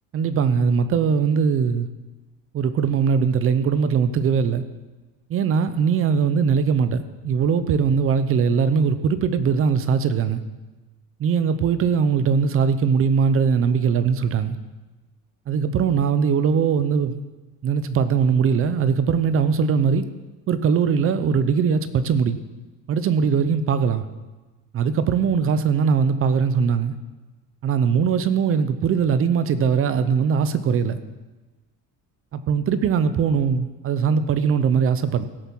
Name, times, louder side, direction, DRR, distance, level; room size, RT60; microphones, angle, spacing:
voice 1, 0.1-1.9 2.5-4.6 5.3-10.4 11.2-14.6 15.5-17.2 17.6-20.1 20.5-22.4 22.9-24.0 24.7-27.0 27.6-31.0 32.3-35.3, right 6 dB, 40° right, 12 dB, 0.7 m, -20 dB
16.0 x 7.0 x 6.1 m, 1.2 s
cardioid pair, 165°, 33 cm